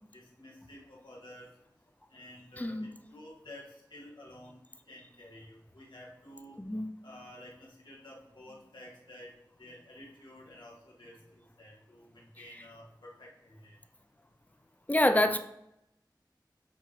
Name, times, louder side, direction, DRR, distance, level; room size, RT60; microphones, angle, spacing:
voice 1, 0.1-1.5 2.1-6.6 7.0-9.3 9.6-13.8, left 1 dB, 75° left, -4 dB, 1.8 m, -51 dB
voice 2, 2.6-2.9 6.6-6.9 14.9-15.4, left 1 dB, 20° left, 8 dB, 0.5 m, -26 dB
9.2 x 3.9 x 3.1 m, 0.81 s
wide cardioid pair, 50°, 8 cm